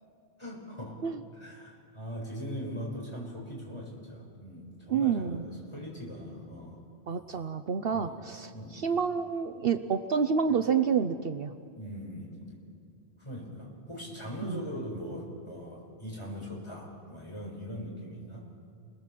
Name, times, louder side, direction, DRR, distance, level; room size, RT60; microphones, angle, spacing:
voice 1, 0.4-1.0 1.4-6.8 7.9-8.2 8.5-8.8 10.5-10.6 11.7-12.6 13.2-18.4, equal, 25° left, -3 dB, 6.3 m, -40 dB
voice 2, 4.9-5.4 7.1-11.5 14.4-14.6, right 6 dB, 60° right, 10 dB, 0.9 m, -28 dB
30.0 x 20.0 x 7.5 m, 2.4 s
omnidirectional pair, 1.1 m